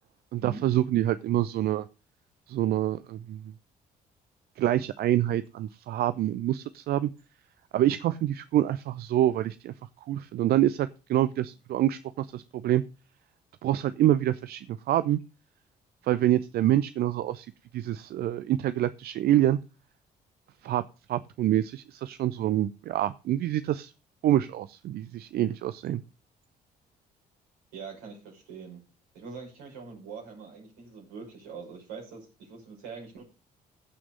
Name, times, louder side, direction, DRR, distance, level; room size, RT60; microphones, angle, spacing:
voice 1, 0.3-1.9 2.5-3.4 4.6-7.1 7.7-9.7 10.1-12.8 13.6-15.2 16.0-17.5 17.7-19.6 20.6-20.8 21.1-23.9 24.2-26.0, right 13 dB, 50° right, 15 dB, 0.6 m, -26 dB
voice 2, 27.7-28.8 29.1-33.2, right 5 dB, 70° right, 0 dB, 5.8 m, -43 dB
15.5 x 6.1 x 5.3 m, 0.32 s
figure-of-eight pair, 45°, 20 cm